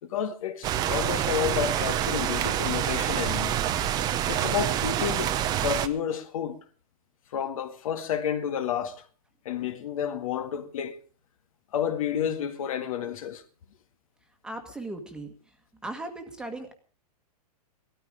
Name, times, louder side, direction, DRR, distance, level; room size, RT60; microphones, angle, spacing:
voice 1, 0.0-3.6 4.3-5.4 5.6-6.6 7.3-9.0 9.5-11.0 11.7-13.4, left 9 dB, 55° left, 1.9 m, -30 dB
sound 1, 0.6-5.9, right 11 dB, 20° right, 0.9 m, -27 dB
voice 2, 14.4-15.3 15.8-16.7, right 2 dB, 5° right, 1.7 m, -37 dB
17.5 x 13.5 x 5.1 m
hypercardioid pair, 155°, 20 cm